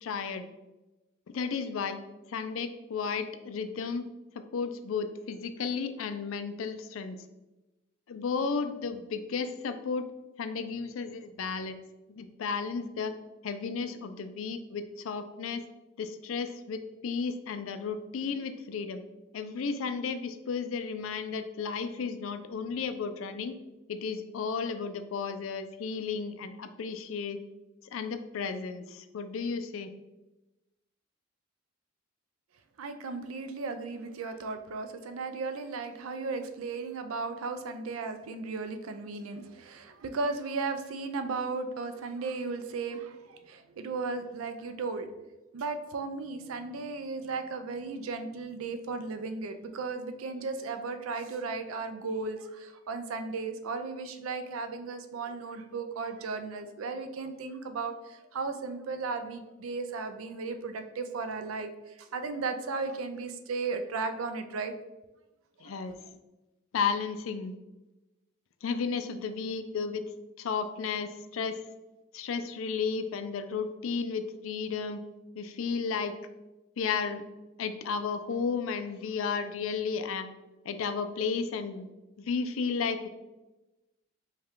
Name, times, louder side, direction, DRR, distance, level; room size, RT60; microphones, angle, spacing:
voice 1, 0.0-0.5 1.3-2.0 2.3-4.1 4.4-7.2 8.1-10.1 10.4-11.8 12.1-13.2 13.4-15.6 16.0-19.0 19.3-23.5 23.9-27.4 27.8-29.9 65.6-66.0 66.7-67.5 68.6-70.0 70.4-71.6 72.1-75.0 75.4-76.2 76.8-77.2 77.6-80.3 80.6-81.9 82.2-83.1, left 5 dB, 75° left, 10 dB, 0.4 m, -33 dB
voice 2, 32.8-45.1 45.5-64.7 65.6-65.7, right 4 dB, 85° right, 8 dB, 0.4 m, -35 dB
5.4 x 2.3 x 3.6 m, 1.0 s
head